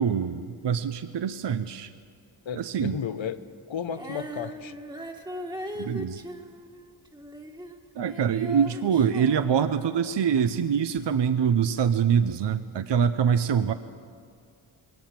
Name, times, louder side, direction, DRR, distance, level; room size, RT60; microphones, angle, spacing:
voice 1, 0.0-1.9 2.5-3.0 5.8-6.2 8.0-13.7, right 7 dB, 60° right, 11 dB, 0.7 m, -24 dB
voice 2, 2.5-4.8, left 7 dB, 70° left, 12 dB, 1.0 m, -34 dB
Female singing, 3.9-10.3 11.0-11.1, equal, 10° right, 1.5 m, -40 dB
21.0 x 18.0 x 7.4 m, 2.2 s
wide cardioid pair, 75°, 48 cm